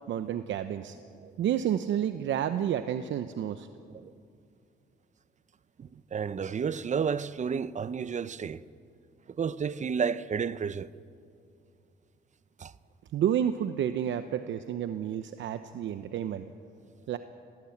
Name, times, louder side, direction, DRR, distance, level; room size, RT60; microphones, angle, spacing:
voice 1, 0.1-1.0 1.4-3.7 13.1-16.4 17.1-17.2, right 10 dB, 70° right, 0.8 m, -30 dB
voice 2, 5.8-8.6 9.3-10.9 12.6-12.7, right 6 dB, 35° right, 0.7 m, -31 dB
18.0 x 17.5 x 8.7 m
cardioid pair, 90°, 20 cm